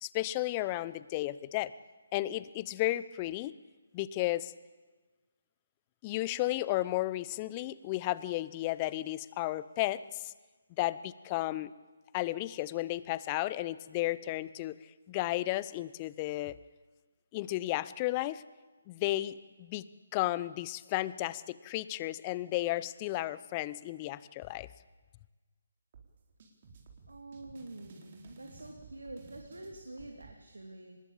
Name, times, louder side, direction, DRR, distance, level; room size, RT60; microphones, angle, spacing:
voice 1, 0.0-1.7 2.1-3.5 3.9-4.5 6.0-10.3 10.8-11.7 12.1-16.6 17.3-18.4 18.9-19.8 20.1-24.7, left 16 dB, 25° left, 18 dB, 0.8 m, -33 dB
sound 1, 25.9-30.3, right 4 dB, 45° right, 4.3 m, -55 dB
voice 2, 27.1-31.0, right 2 dB, 90° right, 3 dB, 2.9 m, -47 dB
24.5 x 20.5 x 8.6 m, 1.3 s
figure-of-eight pair, 150°, 0 cm